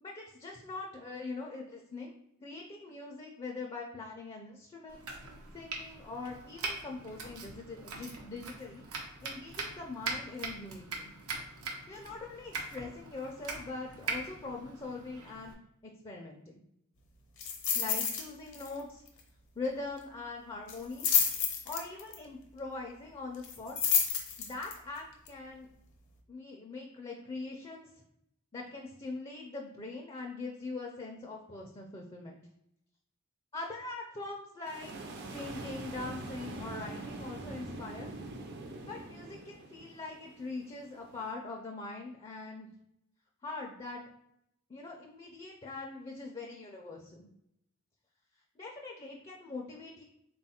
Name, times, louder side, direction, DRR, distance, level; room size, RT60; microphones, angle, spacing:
voice 1, 0.0-2.1 2.4-5.0 5.5-8.8 9.2-11.1 11.9-15.5 15.8-16.6 17.7-19.0 19.6-21.1 21.6-23.8 24.4-25.7 26.3-27.9 28.5-32.4 33.5-34.9 35.3-38.1 38.9-42.7 43.4-44.0 44.7-47.3 48.6-50.0, left 3 dB, 25° left, 0 dB, 0.4 m, -42 dB
Domestic sounds home sounds, 4.9-15.5, right 3 dB, 90° right, 0.8 m, -42 dB
sound 1, 17.4-18.3 18.5-18.8 19.1-19.2 20.7-22.2 23.4-24.7 25.3-25.4, left 7 dB, 60° left, 0.7 m, -29 dB
sound 2, 34.7-41.3, right 2 dB, 50° right, 0.5 m, -44 dB
3.7 x 2.3 x 4.2 m, 0.79 s
head